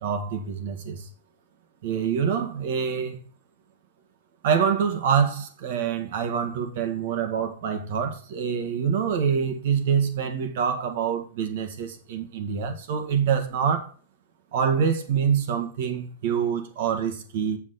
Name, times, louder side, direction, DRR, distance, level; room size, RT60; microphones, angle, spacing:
voice 1, 0.0-1.1 1.8-3.2 4.4-13.9 14.5-17.6, right 7 dB, 60° right, 1.8 m, -26 dB
7.3 x 7.3 x 4.2 m
hypercardioid pair, 115°, 0 cm